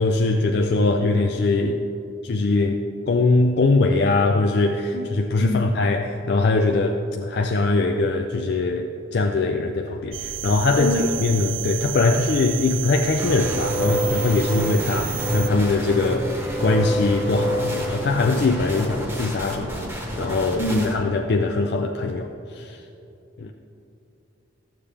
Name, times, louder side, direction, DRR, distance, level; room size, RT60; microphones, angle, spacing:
voice 1, 0.0-1.8 2.2-2.8 3.1-22.8 23.4-23.5, left 3 dB, 55° left, 3 dB, 0.4 m, -22 dB
sound 1, 10.1-15.5, right 12 dB, 75° right, 0.5 m, -32 dB
sound 2, 13.2-21.0, equal, 10° right, 1.0 m, -28 dB
voice 2, 20.6-20.9, left 1 dB, 80° left, 1 dB, 1.2 m, -24 dB
13.5 x 7.3 x 3.4 m, 2.7 s
head